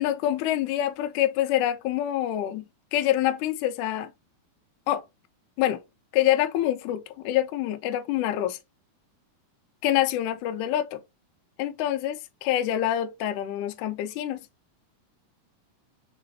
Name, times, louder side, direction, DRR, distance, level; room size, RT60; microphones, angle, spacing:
voice 1, 0.0-2.6 2.9-4.1 4.9-5.0 5.6-5.8 6.1-8.6 9.8-11.0 11.6-14.4, left 12 dB, 80° left, 2.0 m, -26 dB
5.0 x 3.8 x 2.6 m
omnidirectional pair, 3.8 m